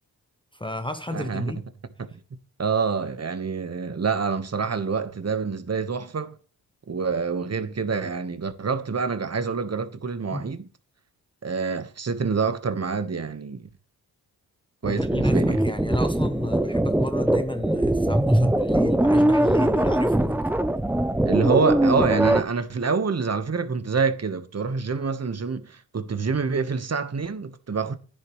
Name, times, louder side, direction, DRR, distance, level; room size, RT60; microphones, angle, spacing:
voice 1, 0.5-1.6 10.3-10.5 14.9-20.4, left 2 dB, 10° left, 1.0 m, -32 dB
voice 2, 1.1-1.5 2.0-6.3 6.9-10.7 11.4-13.7 14.8-15.6 21.3-27.9, right 5 dB, 40° right, 1.3 m, -27 dB
sound 1, 14.8-22.4, right 1 dB, 5° right, 0.6 m, -21 dB
10.5 x 10.0 x 3.2 m
cardioid pair, 60°, 41 cm